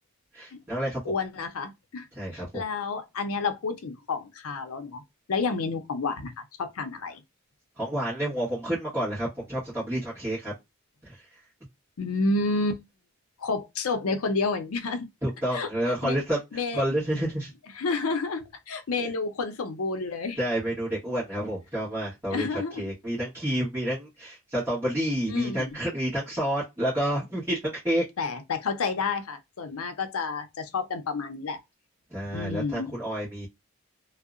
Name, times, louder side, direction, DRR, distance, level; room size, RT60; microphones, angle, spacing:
voice 1, 0.3-1.0 2.1-2.6 7.8-10.5 11.0-11.2 15.2-17.5 19.0-19.1 20.4-28.0 32.1-33.5, right 1 dB, 10° right, 1.2 m, -29 dB
voice 2, 1.1-2.1 2.3-5.0 5.3-7.2 12.0-12.8 13.4-15.1 15.5-15.7 16.0-16.2 16.5-16.9 17.8-20.4 22.3-22.9 25.3-25.8 28.2-31.6 32.3-32.9, left 4 dB, 80° left, 0.5 m, -30 dB
2.7 x 2.0 x 2.4 m
head